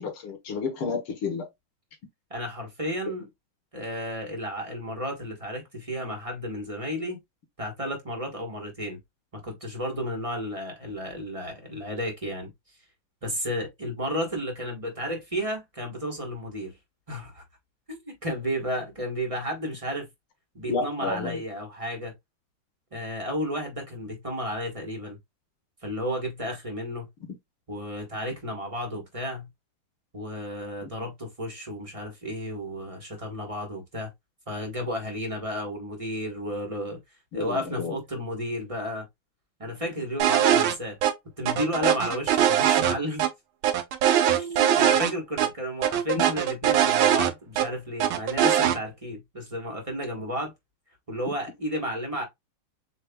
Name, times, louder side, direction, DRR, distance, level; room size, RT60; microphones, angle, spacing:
voice 1, 0.0-1.5 20.7-21.4 37.3-37.9, left 4 dB, 80° left, 2.1 m, -31 dB
voice 2, 2.3-3.2 3.7-7.2 7.6-9.0 9.4-12.5 13.2-16.7 17.1-17.4 17.9-20.1 20.5-22.1 22.9-25.2 25.8-27.1 27.7-29.5 30.1-34.1 34.5-37.0 37.3-39.0 39.6-41.0 41.4-43.3 44.3-50.5 51.1-52.2, equal, 20° right, 1.1 m, -32 dB
sound 1, 40.2-40.7 41.0-41.1 41.5-43.3 43.6-45.1 45.4-45.5 45.8-47.7 48.0-48.8, right 10 dB, 75° right, 1.5 m, -21 dB
7.4 x 2.7 x 2.3 m
omnidirectional pair, 2.3 m